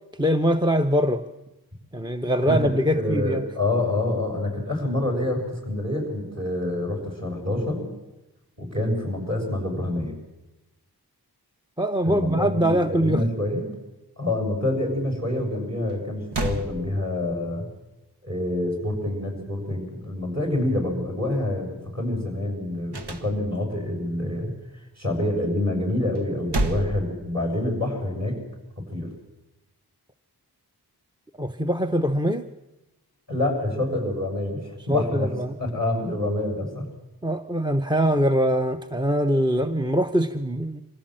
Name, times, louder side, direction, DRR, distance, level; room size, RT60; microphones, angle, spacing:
voice 1, 0.2-1.2 1.9-3.4 11.8-13.2 31.4-32.5 34.9-35.6 37.2-40.8, equal, 10° right, 10 dB, 0.7 m, -23 dB
voice 2, 2.4-7.9 8.6-10.1 12.0-13.7 14.2-17.6 18.2-24.5 25.0-28.4 28.9-29.1 33.3-35.3 35.6-36.8, left 1 dB, 40° right, 3 dB, 6.9 m, -27 dB
sound 1, 15.9-16.0 16.3-17.5 22.9-23.8 26.1-27.7, right 2 dB, 85° right, 1.4 m, -30 dB
24.5 x 15.5 x 7.7 m, 1.0 s
wide cardioid pair, 60°, 39 cm